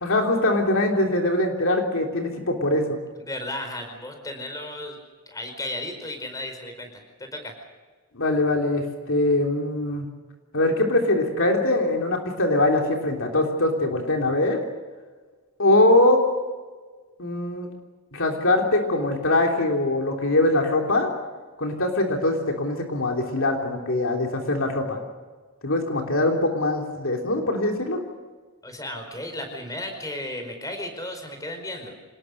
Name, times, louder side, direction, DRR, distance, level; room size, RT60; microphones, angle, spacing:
voice 1, 0.0-2.8 8.1-10.1 10.5-14.6 15.6-16.2 17.2-17.7 18.1-21.1 21.6-25.0 25.6-28.0, left 2 dB, 60° left, 1 dB, 3.4 m, -22 dB
voice 2, 3.3-5.0 5.3-7.5 28.6-32.0, left 1 dB, 15° left, 5 dB, 5.0 m, -34 dB
27.0 x 20.0 x 6.7 m, 1.4 s
head